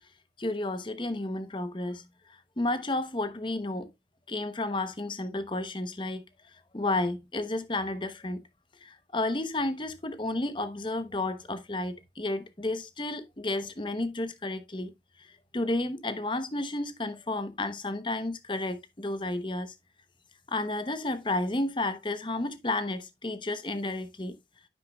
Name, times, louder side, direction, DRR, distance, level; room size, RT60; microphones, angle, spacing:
voice 1, 0.4-2.0 2.6-3.9 4.3-6.2 6.7-8.4 8.8-14.9 15.5-19.7 20.5-24.4, left 2 dB, 25° left, 0.9 m, -32 dB
10.0 x 7.4 x 2.3 m
head